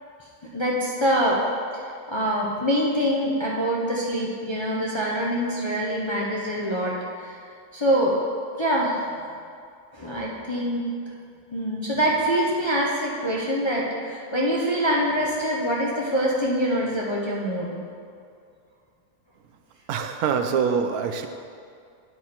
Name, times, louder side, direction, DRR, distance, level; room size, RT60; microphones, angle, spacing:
voice 1, 0.5-1.4 1.7-7.4 7.7-8.2 8.6-9.0 9.9-10.8 11.5-17.8, equal, 30° left, -4 dB, 0.5 m, -25 dB
voice 2, 19.9-21.3, right 6 dB, 80° right, 6 dB, 1.1 m, -24 dB
10.0 x 4.7 x 4.3 m, 2.3 s
omnidirectional pair, 1.6 m